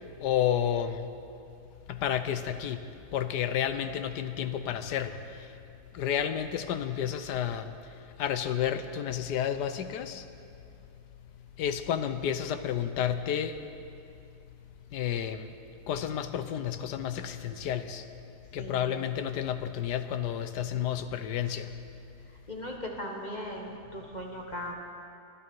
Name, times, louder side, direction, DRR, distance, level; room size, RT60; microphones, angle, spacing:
voice 1, 0.2-1.0 1.9-2.8 3.1-5.2 5.9-7.7 8.2-10.2 11.6-13.5 14.9-15.5 15.9-18.0 18.5-21.7, left 9 dB, 85° left, 10 dB, 1.4 m, -31 dB
voice 2, 18.6-19.1 22.5-24.7, equal, 25° left, 0 dB, 1.6 m, -38 dB
23.5 x 11.5 x 4.7 m, 2.5 s
omnidirectional pair, 1.7 m